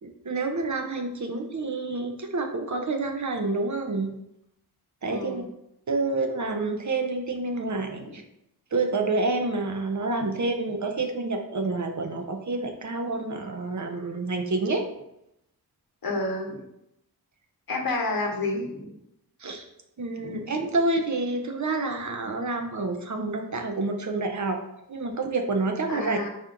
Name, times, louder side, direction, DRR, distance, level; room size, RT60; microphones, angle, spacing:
voice 1, 0.0-4.1 5.0-5.4 5.9-8.2 8.7-14.8 19.4-19.7 20.0-24.6 24.9-26.2, right 3 dB, 50° right, 5 dB, 0.6 m, -28 dB
voice 2, 5.0-5.5 7.9-8.2 16.0-16.6 17.7-18.9 20.2-20.7 25.9-26.3, left 2 dB, 65° left, 0 dB, 0.9 m, -30 dB
4.3 x 2.4 x 3.7 m, 0.82 s
wide cardioid pair, 60°, 39 cm